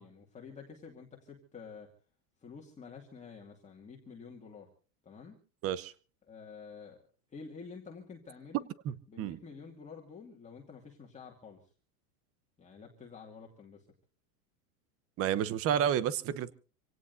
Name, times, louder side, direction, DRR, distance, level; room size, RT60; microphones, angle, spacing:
voice 1, 0.0-1.9 2.4-4.7 5.0-5.4 6.3-7.0 7.3-8.7 9.1-11.7 12.6-13.9, left 5 dB, 15° left, -1 dB, 2.3 m, -49 dB
voice 2, 8.8-9.4 15.2-16.5, right 9 dB, 30° right, 18 dB, 0.9 m, -30 dB
26.5 x 17.5 x 2.7 m, 0.36 s
supercardioid pair, 145°, 49 cm